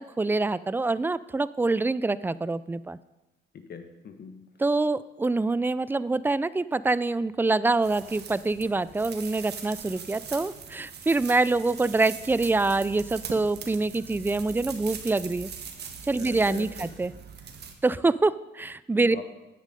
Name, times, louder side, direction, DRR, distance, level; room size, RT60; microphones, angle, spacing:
voice 1, 0.2-3.0 4.6-15.5 16.0-17.1 17.8-19.2, right 3 dB, 10° right, 17 dB, 0.3 m, -25 dB
voice 2, 3.5-4.3 16.2-16.9 19.0-19.2, left 5 dB, 55° left, 7 dB, 1.4 m, -42 dB
sound 1, 7.8-17.7, right 6 dB, 55° right, 1.4 m, -41 dB
9.6 x 8.3 x 5.3 m, 1.0 s
cardioid pair, 90°, 20 cm